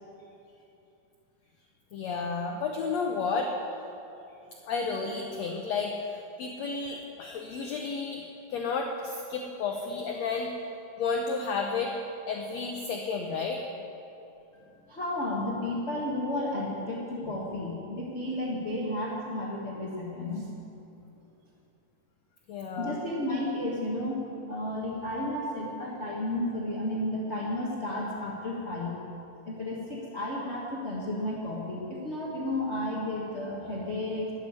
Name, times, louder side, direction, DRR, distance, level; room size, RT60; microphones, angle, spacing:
voice 1, 1.9-3.5 4.7-8.2 8.5-10.5 11.0-11.9 12.3-13.6 22.5-23.0, left 4 dB, 80° left, 2 dB, 1.5 m, -32 dB
voice 2, 14.9-20.5 22.8-29.0 29.4-34.3, left 1 dB, 60° left, -4 dB, 0.7 m, -32 dB
13.0 x 8.0 x 9.7 m, 2.8 s
omnidirectional pair, 4.1 m